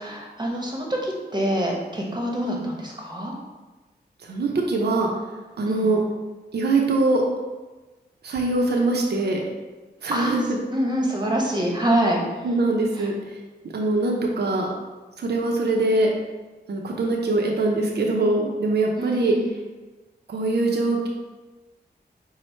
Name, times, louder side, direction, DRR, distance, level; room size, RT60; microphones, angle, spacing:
voice 1, 0.0-3.3 5.7-5.9 10.1-10.4 10.7-12.4 13.0-13.1 19.0-19.5, right 1 dB, 25° right, -1 dB, 0.9 m, -26 dB
voice 2, 2.4-2.7 4.2-5.1 5.6-6.0 6.5-7.2 8.2-9.4 10.0-10.4 12.4-13.1 13.7-14.7 15.2-16.1 16.7-19.3 20.3-21.1, right 2 dB, 75° right, 0 dB, 0.6 m, -22 dB
4.4 x 2.0 x 4.3 m, 1.2 s
wide cardioid pair, 75°, 17 cm